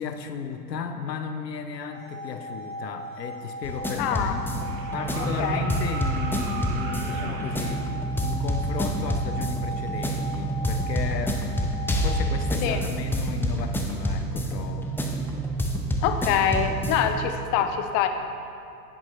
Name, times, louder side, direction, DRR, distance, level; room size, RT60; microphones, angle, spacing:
voice 1, 0.0-7.9 8.2-11.5 12.0-14.9, left 6 dB, 85° left, 7 dB, 0.7 m, -34 dB
sound 1, 1.7-12.7, right 1 dB, 85° right, 2.1 m, -38 dB
sound 2, 3.4-3.5 4.5-7.8 9.5-9.6, right 3 dB, 55° right, 1.3 m, -38 dB
sound 3, 3.6-17.3, right 1 dB, 5° left, 0.5 m, -28 dB
voice 2, 4.0-4.3 5.4-5.6 7.2-7.3 12.6-12.8 16.0-18.1, left 8 dB, 40° left, 7 dB, 0.8 m, -25 dB
10.0 x 9.0 x 3.1 m, 2.6 s
hypercardioid pair, 90°, 48 cm